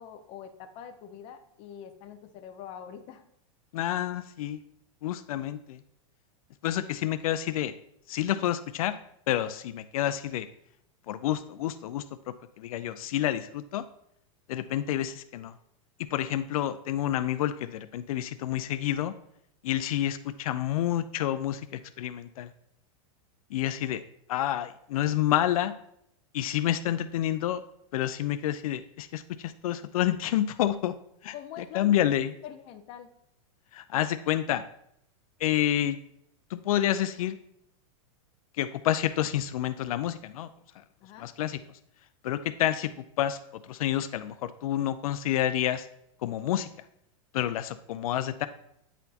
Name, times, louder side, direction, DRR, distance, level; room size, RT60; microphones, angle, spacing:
voice 1, 0.0-3.2 31.3-33.1 41.0-41.3, left 9 dB, 35° left, 7 dB, 0.6 m, -44 dB
voice 2, 3.7-4.6 5.0-5.8 6.6-7.7 8.1-8.9 9.3-10.5 11.1-12.0 12.6-13.8 14.5-15.5 16.1-19.1 19.6-22.5 23.5-24.0 24.3-25.7 26.3-27.6 27.9-30.9 31.2-31.3 31.7-32.3 33.7-34.6 35.4-36.0 36.5-37.4 38.6-40.5 41.2-41.6 42.2-43.4 43.7-45.9 46.2-46.7 47.3-48.5, left 12 dB, 80° left, 12 dB, 0.4 m, -29 dB
8.9 x 4.1 x 2.8 m, 0.74 s
supercardioid pair, 155°, 18 cm